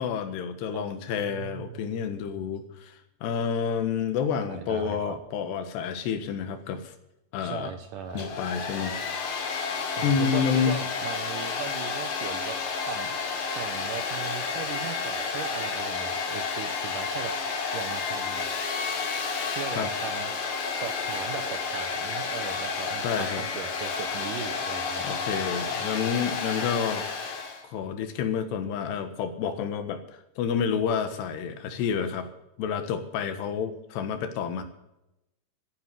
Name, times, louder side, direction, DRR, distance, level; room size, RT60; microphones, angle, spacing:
voice 1, 0.0-6.9 7.3-7.8 8.1-9.0 10.0-10.8 19.7-19.9 23.0-23.4 25.0-27.1 27.6-32.3 32.6-34.6, left 7 dB, 80° left, 9 dB, 3.5 m, -29 dB
voice 2, 0.7-1.9 4.5-5.0 7.4-8.2 9.9-12.6 12.9-18.5 19.6-25.1 25.8-26.1, right 8 dB, 75° right, 8 dB, 2.0 m, -38 dB
Domestic sounds home sounds, 8.1-27.6, left 5 dB, 50° left, 3.2 m, -31 dB
14.5 x 10.0 x 7.5 m, 0.89 s
omnidirectional pair, 4.8 m